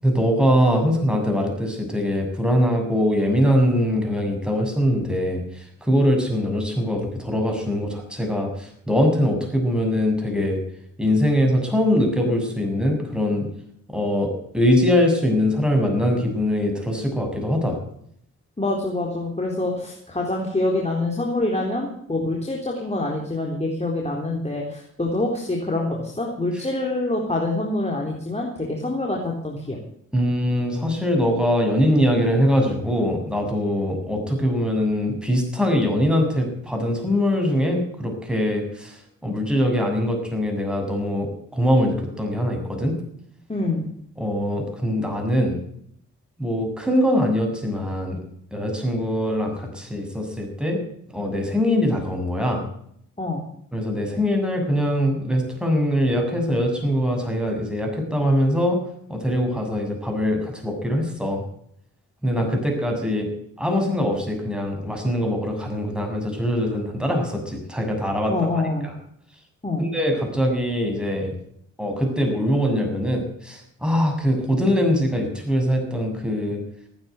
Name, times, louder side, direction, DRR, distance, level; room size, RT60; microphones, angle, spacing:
voice 1, 0.0-5.4 5.9-10.6 11.0-13.5 13.9-14.3 14.5-17.8 30.1-38.9 39.2-43.0 44.2-45.6 46.4-48.2 48.5-50.8 51.1-52.6 53.7-58.8 59.1-61.4 62.2-63.3 63.6-68.6 69.8-71.3 71.8-76.6, equal, 5° right, 2 dB, 7.1 m, -22 dB
voice 2, 18.6-29.8 43.5-43.9 53.2-53.4 68.3-68.9 69.6-69.9, left 2 dB, 20° left, -1 dB, 4.0 m, -26 dB
15.5 x 9.7 x 8.4 m, 0.69 s
supercardioid pair, 50°, 32 cm